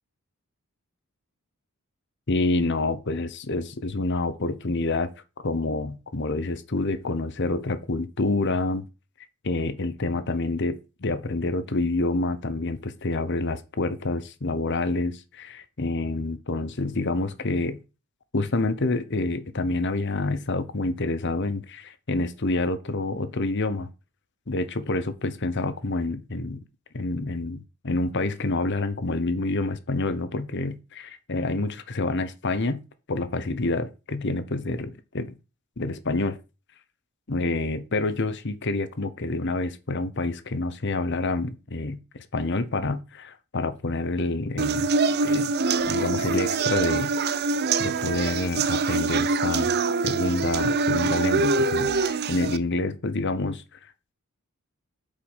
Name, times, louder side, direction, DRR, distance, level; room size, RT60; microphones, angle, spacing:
voice 1, 2.3-5.1 5.4-8.8 9.4-17.8 18.3-23.9 24.5-26.6 26.9-32.8 33.1-35.3 35.8-36.4 37.3-44.9 45.2-45.5 45.8-47.2 47.8-49.8 50.0-53.6, left 2 dB, 55° left, 0.9 m, -28 dB
sound 1, 44.6-52.6, right 4 dB, 45° right, 0.6 m, -24 dB
8.3 x 5.6 x 5.6 m
head